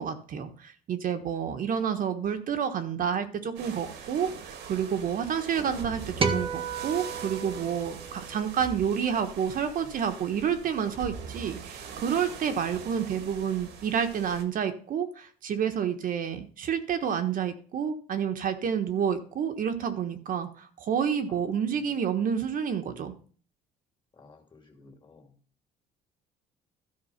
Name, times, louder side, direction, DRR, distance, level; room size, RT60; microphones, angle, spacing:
voice 1, 0.0-23.1, right 8 dB, 55° right, 7 dB, 1.3 m, -29 dB
sound 1, 3.6-14.4, right 6 dB, 80° right, 1.9 m, -42 dB
sound 2, 6.2-8.7, right 5 dB, 30° right, 1.3 m, -32 dB
voice 2, 21.3-22.0 24.1-25.3, left 3 dB, 30° left, 4 dB, 2.5 m, -54 dB
13.0 x 4.8 x 5.8 m, 0.43 s
cardioid pair, 110°, 17 cm